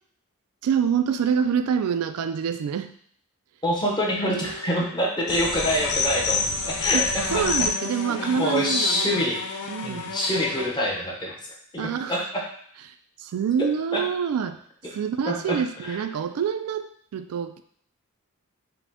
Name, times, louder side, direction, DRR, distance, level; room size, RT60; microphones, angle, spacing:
voice 1, 0.6-2.9 4.3-4.9 6.9-7.0 7.3-9.2 9.7-10.2 11.8-12.3 13.2-14.6 14.9-16.9 17.1-17.6, right 7 dB, 80° right, 10 dB, 0.3 m, -26 dB
voice 2, 3.6-7.4 8.1-9.4 9.8-11.3 11.7-12.4 13.9-14.0 15.3-16.0, equal, 20° left, -2 dB, 0.8 m, -26 dB
sound 1, 5.3-10.7, left 5 dB, 75° left, 0.5 m, -29 dB
4.8 x 2.1 x 3.5 m, 0.63 s
head